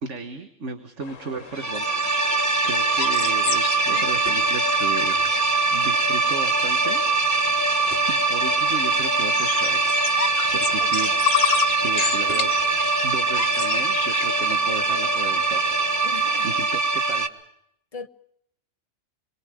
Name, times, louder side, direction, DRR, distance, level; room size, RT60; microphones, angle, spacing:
voice 1, 0.0-5.3 5.7-7.0 7.3-7.5 8.1-10.0 10.5-11.5 11.8-12.5 13.0-16.0 16.4-17.5, right 4 dB, 65° right, 1.8 m, -34 dB
sound 1, 1.0-16.6, left 6 dB, 75° left, 1.6 m, -32 dB
sound 2, 1.5-17.3, right 3 dB, 15° right, 0.9 m, -22 dB
sound 3, 3.8-5.1 5.4-5.5 5.8-5.9 6.5-7.4 7.8-8.2 8.5-8.8 9.3-9.4 10.3-10.6 11.0-11.1 11.4-11.7 12.3-13.3 13.6-13.7 14.3-14.7 14.9-15.0, equal, 50° right, 4.5 m, -45 dB
voice 2, 10.8-11.2 16.0-16.7 17.9-18.1, left 4 dB, 35° left, 0.9 m, -40 dB
28.0 x 22.5 x 5.0 m
omnidirectional pair, 1.3 m